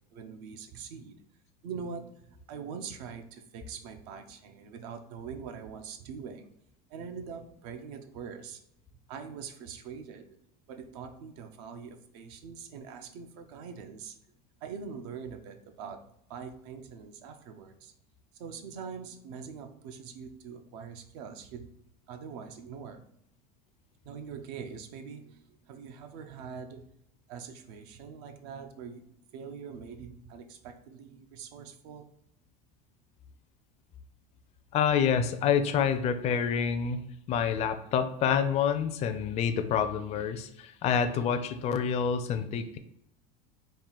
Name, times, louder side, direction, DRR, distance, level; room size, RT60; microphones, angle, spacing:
voice 1, 0.1-1.2 1.6-6.5 6.9-8.6 9.1-10.3 10.7-14.2 14.6-16.0 16.3-17.9 18.4-21.7 22.1-23.2 24.0-26.9 27.3-32.1, right 6 dB, 75° right, 6 dB, 0.6 m, -43 dB
voice 2, 34.7-37.0 37.3-42.8, left 7 dB, 30° left, 8 dB, 0.4 m, -27 dB
3.7 x 2.4 x 3.9 m, 0.76 s
supercardioid pair, 130°, 21 cm